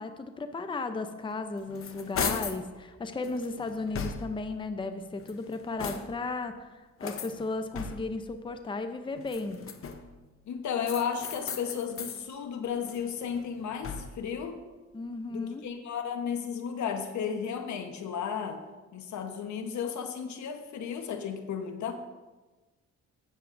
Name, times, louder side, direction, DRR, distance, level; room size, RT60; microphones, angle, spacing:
voice 1, 0.0-9.6 14.9-15.6, left 3 dB, 15° left, 8 dB, 0.6 m, -35 dB
sound 1, 1.3-2.7 3.2-4.5 5.1-6.3 7.0-8.3 9.2-10.2 10.8-12.2 12.6-14.3, left 6 dB, 45° left, 0.8 m, -38 dB
voice 2, 10.5-14.6 15.3-18.6 18.9-21.9, left 7 dB, 70° left, 6 dB, 1.1 m, -34 dB
15.5 x 7.1 x 2.6 m, 1.2 s
cardioid pair, 90°, 30 cm